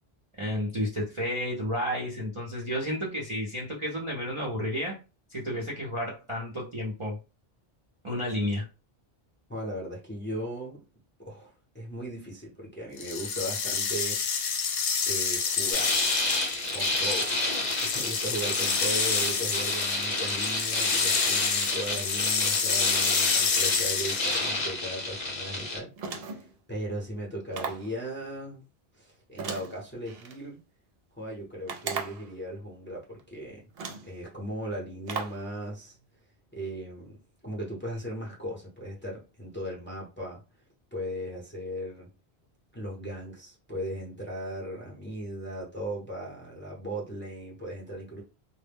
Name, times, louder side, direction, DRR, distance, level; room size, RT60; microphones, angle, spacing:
voice 1, 0.4-5.0 5.3-7.2 8.0-8.7, equal, 35° right, 0.5 m, -31 dB
voice 2, 9.5-10.8 11.2-14.2 15.1-15.9 16.7-17.5 17.8-28.6 29.0-30.6 31.2-33.6 34.0-36.0 36.5-37.2 37.4-40.4 40.9-42.1 42.7-48.2, right 1 dB, 15° left, 0.6 m, -37 dB
sound 1, 13.0-24.6, left 6 dB, 70° left, 0.8 m, -29 dB
sound 2, 15.7-25.8, left 2 dB, 45° left, 0.9 m, -30 dB
sound 3, 26.0-26.5 27.5-27.9 29.4-30.4 31.7-32.3 33.2-33.3 33.8-34.1 35.1-35.4, right 5 dB, 70° right, 0.8 m, -36 dB
2.1 x 2.0 x 3.4 m
omnidirectional pair, 1.1 m